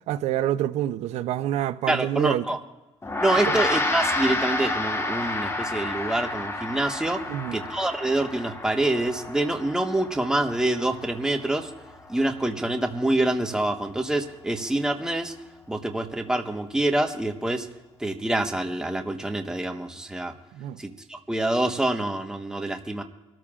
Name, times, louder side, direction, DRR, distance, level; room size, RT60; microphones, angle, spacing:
voice 1, 0.1-2.5 3.5-3.6 7.3-7.6 20.5-20.8, right 12 dB, 90° right, 0.6 m, -27 dB
voice 2, 1.9-2.6 3.2-7.2 7.5-11.7 12.1-15.3 15.7-17.7 18.0-20.3 20.8-23.0, right 1 dB, 5° right, 1.2 m, -26 dB
Gong, 3.0-12.6, left 2 dB, 25° left, 1.4 m, -30 dB
26.5 x 13.5 x 2.4 m
cardioid pair, 105°, 11 cm